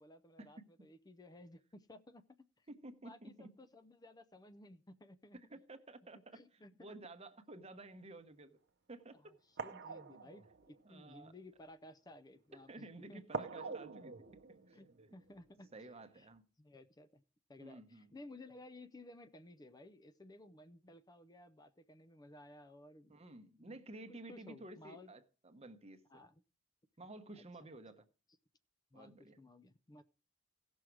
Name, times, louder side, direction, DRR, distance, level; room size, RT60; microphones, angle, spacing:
voice 1, 0.0-2.7 3.0-5.4 6.3-7.0 9.5-13.8 14.7-15.9 16.1-16.3 16.6-17.2 17.5-23.2 23.6-23.8 24.1-25.1 26.1-26.4 27.4-27.5 28.9-30.0, left 1 dB, 20° left, 0.5 m, -57 dB
voice 2, 2.7-3.5 5.3-6.4 6.8-8.6 8.9-9.4 10.8-11.3 12.5-14.3 14.7-15.2 15.7-16.4 17.6-18.1 23.1-26.0 27.0-28.0 28.9-29.4, right 2 dB, 30° right, 1.0 m, -53 dB
sound 1, 8.0-8.2 9.0-9.1 9.6-11.3 13.3-15.9 16.2-16.3, right 4 dB, 55° right, 0.7 m, -46 dB
16.5 x 6.2 x 4.6 m
head